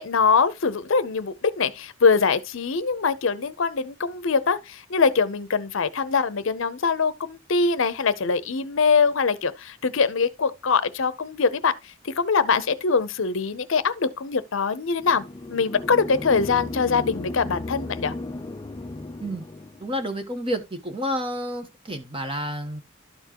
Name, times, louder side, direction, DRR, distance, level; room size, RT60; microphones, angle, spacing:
voice 1, 0.0-11.7 12.0-15.2 15.5-18.1, left 5 dB, 65° left, 0.6 m, -23 dB
sound 1, 15.0-19.9, left 2 dB, 20° left, 0.4 m, -35 dB
voice 2, 19.8-22.8, equal, 25° right, 1.2 m, -30 dB
12.5 x 4.5 x 2.9 m
head